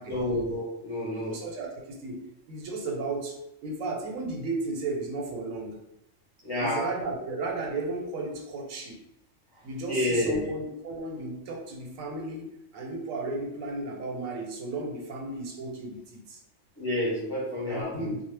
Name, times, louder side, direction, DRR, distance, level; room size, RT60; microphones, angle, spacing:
voice 1, 0.1-1.3 6.4-6.9 9.9-10.5 16.8-18.1, left 1 dB, 25° left, -8 dB, 0.7 m, -29 dB
voice 2, 1.2-2.2 2.5-5.8 6.6-9.0 9.6-16.4 17.7-18.2, right 3 dB, 90° right, 0 dB, 1.0 m, -34 dB
2.2 x 2.0 x 3.2 m, 0.81 s
omnidirectional pair, 1.4 m